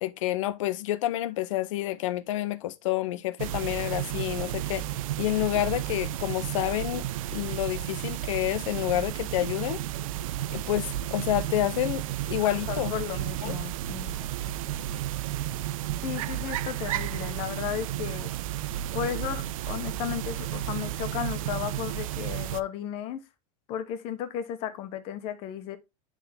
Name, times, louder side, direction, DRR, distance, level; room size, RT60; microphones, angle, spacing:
voice 1, 0.0-4.8 5.2-7.1 7.3-9.8 10.5-12.9 13.4-13.6, left 14 dB, 70° left, 0.8 m, -29 dB
sound 1, 3.4-22.6, right 13 dB, 90° right, 0.6 m, -32 dB
voice 2, 12.4-14.2 16.0-18.3 18.9-23.2 23.7-25.8, left 10 dB, 35° left, 1.0 m, -34 dB
10.5 x 3.6 x 3.5 m
supercardioid pair, 180°, 17 cm